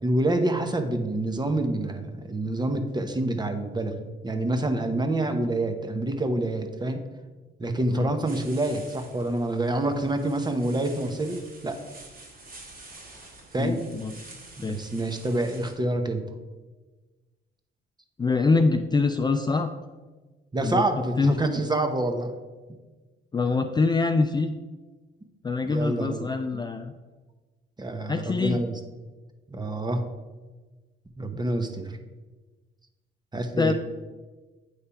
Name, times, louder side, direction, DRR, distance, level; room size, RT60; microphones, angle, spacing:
voice 1, 0.0-4.0 4.2-7.0 7.6-11.8 13.5-13.8 14.6-16.2 20.5-22.3 25.7-26.2 27.8-28.8 29.5-30.0 31.2-32.0 33.3-33.7, right 2 dB, 20° right, 6 dB, 0.9 m, -27 dB
sound 1, 8.2-15.7, right 2 dB, 50° right, 1.9 m, -48 dB
voice 2, 13.6-14.1 14.6-14.8 18.2-19.7 20.6-20.8 21.2-21.4 23.3-24.5 25.4-26.9 28.1-28.6 33.6-33.7, left 4 dB, 20° left, 7 dB, 0.4 m, -24 dB
8.4 x 3.3 x 5.6 m, 1.3 s
cardioid pair, 90°, 20 cm